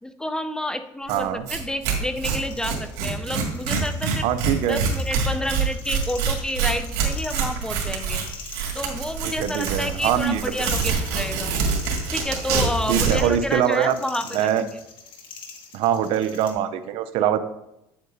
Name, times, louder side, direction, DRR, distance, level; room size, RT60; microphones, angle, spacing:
voice 1, 0.0-4.2 4.7-8.2 8.7-11.5 12.1-14.8, left 1 dB, 5° left, 9 dB, 0.5 m, -29 dB
voice 2, 1.1-1.4 4.2-4.8 9.2-10.4 12.9-14.0 14.3-14.6 15.7-17.4, right 9 dB, 65° right, 12 dB, 0.6 m, -23 dB
Tearing, 1.1-1.2 1.5-1.6 1.8-13.3, right 5 dB, 85° right, 2.0 m, -25 dB
sound 1, 2.4-16.5, left 5 dB, 55° left, 1.7 m, -43 dB
8.7 x 7.9 x 2.7 m, 0.85 s
supercardioid pair, 105°, 10 cm